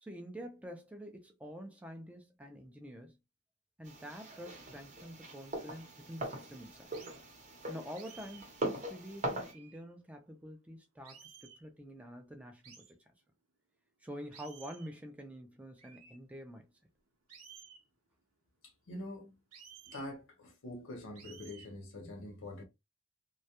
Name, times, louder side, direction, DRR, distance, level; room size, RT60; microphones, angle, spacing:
voice 1, 0.0-3.2 3.8-6.9 7.7-13.0 14.0-16.7, equal, 5° right, 0.3 m, -47 dB
sound 1, 3.8-9.5, right 1 dB, 30° right, 0.7 m, -41 dB
sound 2, 6.9-7.2 7.9-8.5 9.4-9.8 11.0-11.6 12.6-12.9 14.3-14.9 15.8-16.1 17.3-17.8 19.5-20.1 21.1-21.7, right 7 dB, 85° right, 0.8 m, -55 dB
voice 2, 18.6-19.3 19.9-22.6, left 1 dB, 55° left, 0.6 m, -45 dB
2.2 x 2.0 x 2.8 m
head